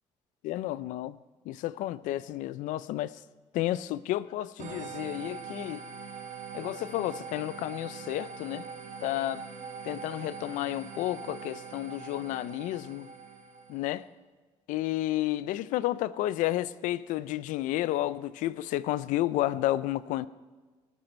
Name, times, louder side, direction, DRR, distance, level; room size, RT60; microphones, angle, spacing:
voice 1, 0.4-1.2 1.5-3.1 3.5-5.8 6.5-8.7 9.0-9.5 9.8-13.1 13.7-14.1 14.7-20.3, left 15 dB, 90° left, 0.5 m, -31 dB
sound 1, 4.6-14.0, right 5 dB, 65° right, 1.7 m, -43 dB
17.5 x 12.5 x 4.4 m
supercardioid pair, 70°, 13 cm